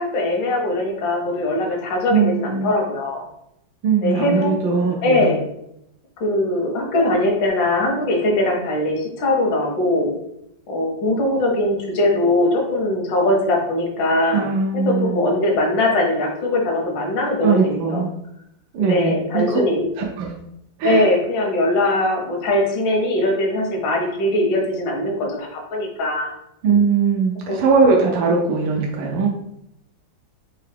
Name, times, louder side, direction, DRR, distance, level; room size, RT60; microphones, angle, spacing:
voice 1, 0.0-3.2 4.0-4.5 5.0-5.4 6.2-10.1 10.7-18.0 18.9-19.8 20.8-26.3 27.5-27.6, left 1 dB, 80° left, 1 dB, 1.7 m, -21 dB
voice 2, 2.1-2.7 3.8-5.3 14.3-15.2 17.4-18.1 18.7-20.3 20.8-21.1 26.6-29.3, right 5 dB, 90° right, -1 dB, 1.4 m, -20 dB
4.6 x 2.9 x 3.3 m, 0.79 s
omnidirectional pair, 2.0 m